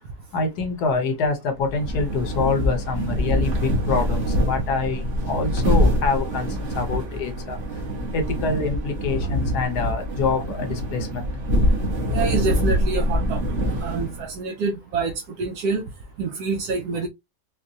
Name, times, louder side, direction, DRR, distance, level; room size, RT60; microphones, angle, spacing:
voice 1, 0.3-7.6 8.1-11.3, left 4 dB, 70° left, 1.4 m, -26 dB
sound 1, 1.6-14.4, equal, 50° right, 1.3 m, -24 dB
voice 2, 12.1-13.4 13.8-15.8 16.2-17.1, right 4 dB, 70° right, 1.1 m, -26 dB
4.3 x 2.3 x 2.7 m
omnidirectional pair, 1.8 m